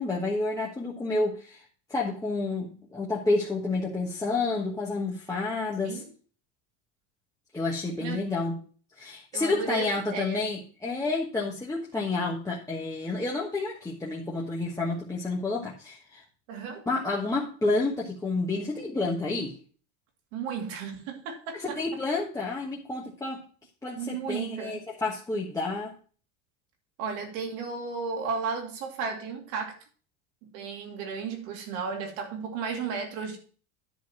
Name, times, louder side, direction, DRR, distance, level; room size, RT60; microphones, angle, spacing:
voice 1, 0.0-6.0 7.5-8.6 9.0-16.2 16.9-19.6 21.5-23.4 23.8-25.9, left 3 dB, 10° left, -4 dB, 1.3 m, -30 dB
voice 2, 8.0-8.3 9.3-10.4 16.5-16.8 20.3-21.8 24.0-24.8 27.0-29.8 30.5-33.4, right 5 dB, 75° right, 2 dB, 2.8 m, -34 dB
10.5 x 4.1 x 6.1 m, 0.41 s
supercardioid pair, 130°, 36 cm